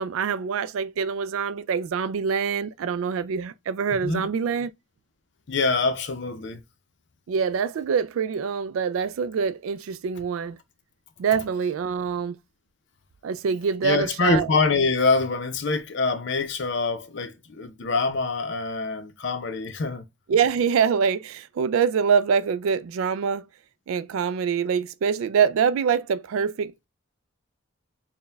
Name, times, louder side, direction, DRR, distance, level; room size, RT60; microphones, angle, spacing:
voice 1, 0.0-4.7 7.3-10.6 11.2-12.4 13.2-14.5 20.3-23.4 23.9-26.9, right 6 dB, 75° right, 0.3 m, -25 dB
voice 2, 5.5-6.6 13.8-20.0, left 4 dB, 55° left, 0.6 m, -25 dB
4.3 x 2.2 x 3.3 m
head